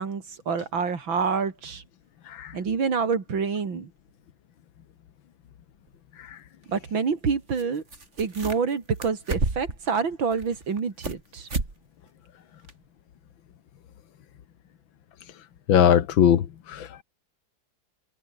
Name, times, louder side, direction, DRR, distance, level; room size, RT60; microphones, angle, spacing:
voice 1, 0.0-1.8 2.5-3.9 6.7-7.8 8.2-11.5, right 5 dB, 85° right, 3.5 m, -27 dB
sound 1, 5.9-6.0 7.6-7.7 7.9-8.7 9.0-9.8 10.3-11.2 11.5-11.7 12.1-12.2 12.7-12.8, right 3 dB, 35° right, 3.4 m, -30 dB
voice 2, 15.7-17.0, left 9 dB, 85° left, 2.1 m, -21 dB
omnidirectional pair, 2.1 m